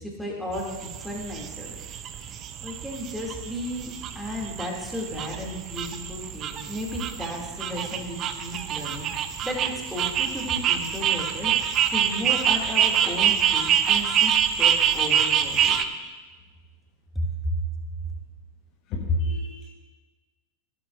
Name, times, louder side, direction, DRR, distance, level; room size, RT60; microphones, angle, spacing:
voice 1, 0.0-2.0 2.6-15.7 17.1-17.5, equal, ahead, -3 dB, 2.5 m, -34 dB
sound 1, 0.5-15.9, right 9 dB, 30° right, 0.6 m, -26 dB
voice 2, 18.9-19.7, left 1 dB, 40° left, 1 dB, 1.3 m, -27 dB
16.0 x 11.5 x 2.6 m, 1.3 s
figure-of-eight pair, 90°, 0 cm